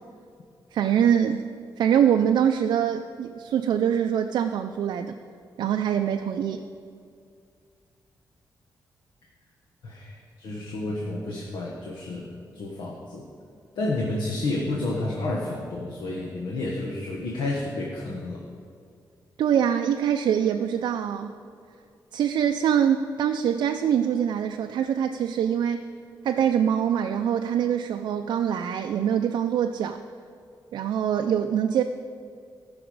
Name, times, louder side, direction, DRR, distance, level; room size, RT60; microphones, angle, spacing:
voice 1, 0.7-1.4 1.8-5.2 5.6-6.7 19.4-21.3 22.1-25.9 26.2-30.0 30.7-31.8, right 9 dB, 75° right, 6 dB, 0.4 m, -24 dB
voice 2, 9.8-13.3 13.7-18.4, left 2 dB, 85° left, -2 dB, 1.3 m, -30 dB
17.5 x 6.0 x 4.7 m, 2.3 s
wide cardioid pair, 160°, 7 cm